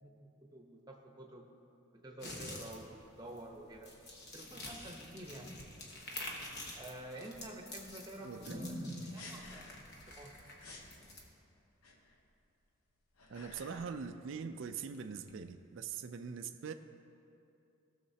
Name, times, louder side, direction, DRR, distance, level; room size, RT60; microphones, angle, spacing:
voice 1, 0.0-1.5 2.0-3.9 4.3-5.5 6.7-9.8 10.0-10.3, right 1 dB, 20° right, 1 dB, 0.8 m, -47 dB
sound 1, 2.2-11.2, left 1 dB, 50° left, 1.1 m, -48 dB
voice 2, 8.2-8.6 13.3-16.7, right 6 dB, 60° right, 8 dB, 0.4 m, -42 dB
sound 2, 9.2-10.0 10.3-10.4 10.6-10.9 11.8-12.3 12.9-14.0 14.3-15.9, left 3 dB, 90° left, 1.0 m, -54 dB
17.0 x 6.6 x 2.8 m, 2.7 s
head